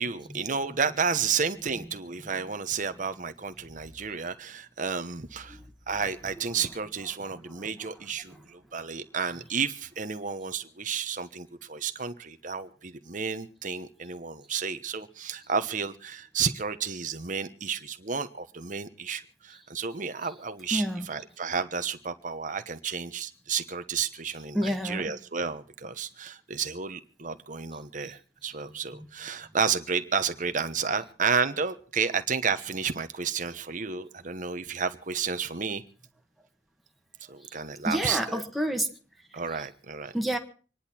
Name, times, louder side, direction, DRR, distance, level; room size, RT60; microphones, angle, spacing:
voice 1, 0.0-5.6 5.9-35.8 37.3-38.4 39.3-40.1, right 6 dB, 45° right, 1.1 m, -31 dB
voice 2, 7.3-7.7 8.3-8.4 20.7-21.1 24.5-25.1 28.7-29.1 37.4-37.5 37.8-39.0 40.1-40.4, equal, ahead, 1.5 m, -30 dB
26.0 x 10.5 x 4.4 m
head